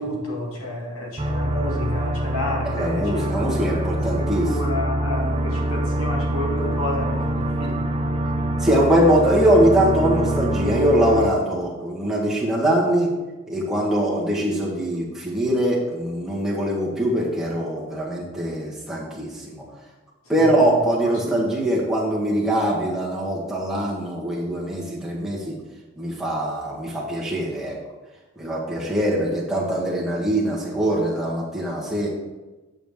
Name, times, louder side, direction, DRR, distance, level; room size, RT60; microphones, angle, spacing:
voice 1, 0.0-3.3 3.7-3.9 4.2-7.9 20.4-20.6 21.2-21.4, left 1 dB, 80° left, -2 dB, 2.0 m, -30 dB
sound 1, 1.2-11.3, right 1 dB, 25° right, 0.5 m, -25 dB
voice 2, 2.6-4.4 7.4-7.5 8.6-13.1 13.5-19.6 20.3-25.5 26.0-27.7 28.4-32.1, right 1 dB, ahead, -5 dB, 1.5 m, -22 dB
8.8 x 6.1 x 3.6 m, 1.1 s
head